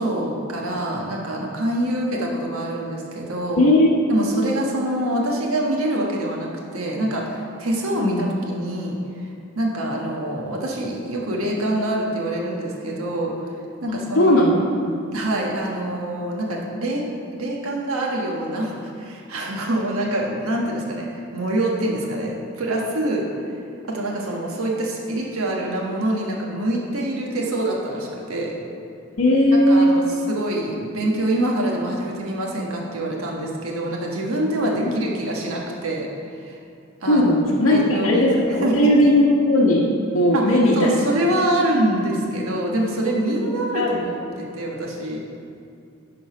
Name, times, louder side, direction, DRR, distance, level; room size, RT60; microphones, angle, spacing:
voice 1, 0.0-3.6 4.1-13.3 13.8-14.5 15.1-17.0 17.3-21.1 21.3-23.5 23.9-28.5 29.5-30.0 30.3-36.6 37.0-37.4 37.7-38.2 38.6-38.9 40.3-45.2, right 1 dB, 75° right, -2 dB, 1.3 m, -25 dB
voice 2, 3.6-4.0 8.0-8.2 13.9-14.5 29.2-29.9 37.1-39.9 40.1-40.9 43.7-44.0, left 1 dB, 70° left, -5 dB, 1.0 m, -17 dB
10.5 x 3.9 x 5.8 m, 2.4 s
head